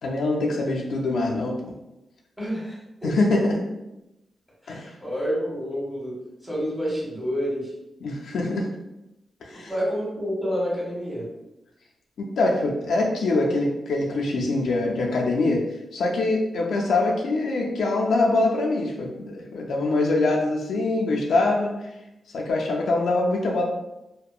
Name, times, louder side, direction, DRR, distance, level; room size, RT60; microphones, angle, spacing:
voice 1, 0.0-1.7 3.0-3.6 4.7-4.9 8.0-8.7 9.5-9.7 12.2-15.6 15.9-21.7 22.3-23.6, left 2 dB, 85° left, -1 dB, 0.4 m, -24 dB
voice 2, 2.4-2.7 3.0-3.1 4.6-6.1 6.4-7.7 9.5-11.3, equal, ahead, -6 dB, 1.3 m, -28 dB
2.7 x 2.1 x 2.3 m, 0.91 s
cardioid pair, 90°, 0 cm